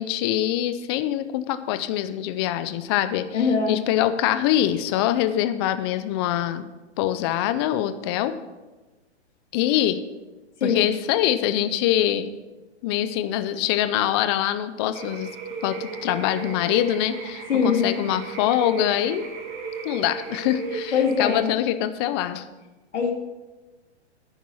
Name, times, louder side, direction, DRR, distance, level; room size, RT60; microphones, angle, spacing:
voice 1, 0.0-3.3 3.7-6.7 7.0-8.3 9.5-10.0 10.6-12.3 12.8-15.3 15.6-19.3 19.8-22.4, left 12 dB, 25° left, 11 dB, 0.5 m, -24 dB
voice 2, 3.3-3.8 10.6-10.9 17.5-17.9 20.9-21.5 22.9-23.1, left 6 dB, 80° left, 2 dB, 2.7 m, -22 dB
sound 1, 14.9-21.4, right 4 dB, 30° right, 3.9 m, -34 dB
10.0 x 9.6 x 5.6 m, 1.1 s
hypercardioid pair, 145°, 35 cm